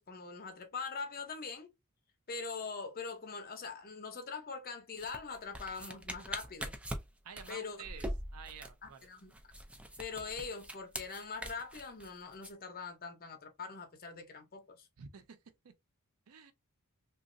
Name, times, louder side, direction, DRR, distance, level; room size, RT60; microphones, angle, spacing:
voice 1, 0.0-1.7 2.3-6.8 7.5-7.8 8.8-9.3 10.0-14.9, left 5 dB, 40° left, 0.7 m, -43 dB
sound 1, 5.0-12.5, equal, 5° right, 0.4 m, -43 dB
voice 2, 7.2-8.1 8.3-9.1 15.0-15.4 15.6-15.7 16.3-16.5, right 7 dB, 75° right, 0.5 m, -50 dB
3.0 x 2.5 x 2.5 m
head